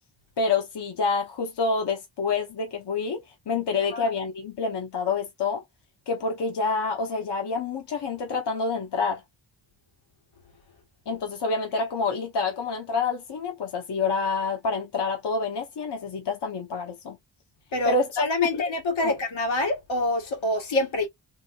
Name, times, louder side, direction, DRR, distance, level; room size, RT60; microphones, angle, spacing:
voice 1, 0.4-3.2 3.5-5.6 6.1-9.2 11.1-17.2 17.8-18.6 19.0-19.1, left 4 dB, 60° left, 1.0 m, -27 dB
voice 2, 17.7-21.1, left 2 dB, 85° left, 1.7 m, -26 dB
3.5 x 3.1 x 2.4 m
wide cardioid pair, 90°, 45 cm